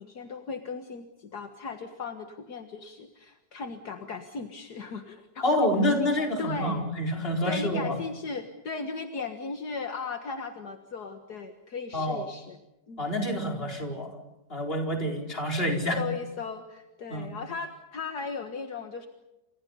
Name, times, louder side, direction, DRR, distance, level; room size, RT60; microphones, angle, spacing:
voice 1, 0.0-5.7 6.0-6.1 6.4-6.9 7.4-12.6 12.9-13.1 16.0-19.1, left 4 dB, 65° left, 6 dB, 2.1 m, -37 dB
voice 2, 5.4-8.0 11.9-12.2 13.0-14.1 14.5-16.0 17.1-17.3, equal, 30° left, 2 dB, 4.8 m, -27 dB
29.0 x 27.5 x 5.5 m, 0.98 s
omnidirectional pair, 1.9 m